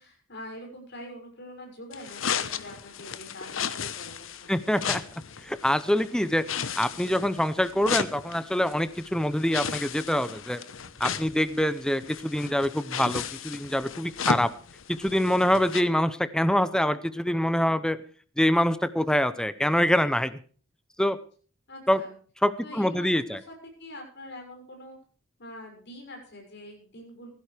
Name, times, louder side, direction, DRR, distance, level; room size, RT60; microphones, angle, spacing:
voice 1, 0.0-4.6 21.7-22.1 22.6-23.5 23.8-25.0 25.4-27.3, left 1 dB, 60° left, 2 dB, 6.6 m, -44 dB
sound 1, 1.9-15.8, left 7 dB, 75° left, 1.0 m, -35 dB
voice 2, 4.5-5.0 5.4-10.6 11.0-14.5 14.9-18.0 18.4-20.4 21.0-21.2 21.9-22.0 22.4-23.4, equal, 5° left, 13 dB, 0.6 m, -25 dB
16.5 x 15.5 x 3.4 m, 0.41 s
head